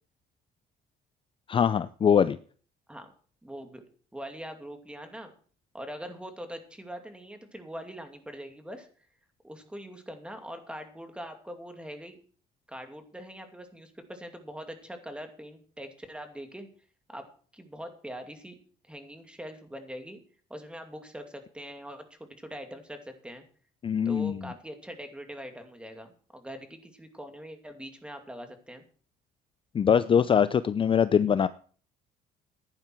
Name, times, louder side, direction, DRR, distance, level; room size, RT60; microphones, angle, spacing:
voice 1, 1.5-2.4 23.8-24.4 29.7-31.5, left 7 dB, 30° left, 14 dB, 0.5 m, -23 dB
voice 2, 3.4-3.8 4.1-5.3 5.7-8.9 9.4-12.2 12.7-16.7 17.1-17.3 17.5-18.6 18.9-20.2 20.5-23.4 24.0-28.8, equal, 5° right, 6 dB, 2.6 m, -42 dB
14.5 x 11.0 x 4.6 m, 0.43 s
cardioid pair, 110°, 17 cm